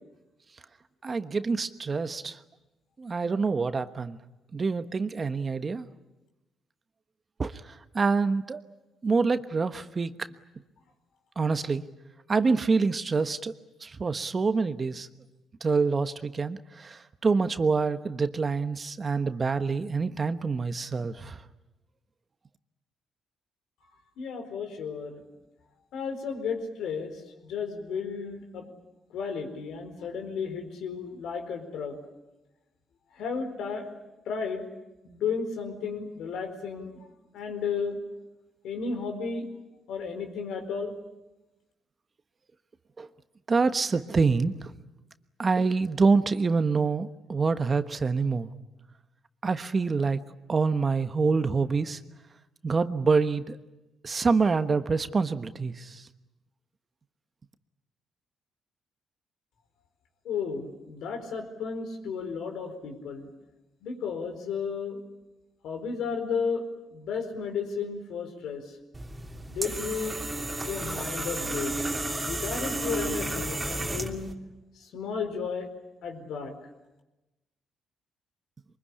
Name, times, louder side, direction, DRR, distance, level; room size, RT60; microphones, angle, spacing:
voice 1, 1.0-2.4 3.0-4.2 4.5-5.9 7.4-7.5 7.9-8.6 9.0-10.1 11.4-11.8 12.3-13.5 13.8-15.1 15.6-21.4 43.0-43.1 43.5-44.7 45.4-48.5 49.4-50.2 50.5-52.0 52.6-53.6 54.0-56.0, right 4 dB, 35° right, 10 dB, 1.2 m, -26 dB
voice 2, 24.2-25.2 25.9-28.7 29.1-32.0 33.2-33.9 34.3-34.7 35.0-37.1 37.3-38.0 38.6-39.5 39.9-40.9 60.2-63.3 63.8-65.0 65.6-66.6 66.9-68.6 69.5-70.2 70.6-71.7 72.3-74.3 74.8-75.7 76.0-76.5, left 5 dB, 80° left, 6 dB, 4.4 m, -33 dB
sound 1, 68.9-74.3, right 2 dB, 15° right, 2.9 m, -32 dB
23.5 x 21.5 x 10.0 m, 1.0 s
cardioid pair, 90°, 0 cm